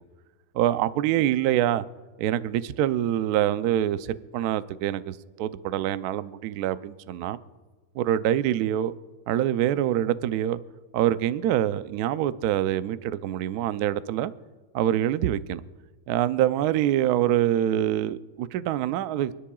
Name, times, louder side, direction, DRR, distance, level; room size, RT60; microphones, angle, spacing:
voice 1, 0.5-1.8 2.2-7.4 8.0-8.9 9.3-10.6 10.9-14.3 14.7-15.6 16.1-19.3, right 12 dB, 85° right, 0.8 m, -25 dB
28.5 x 10.0 x 2.3 m
omnidirectional pair, 2.2 m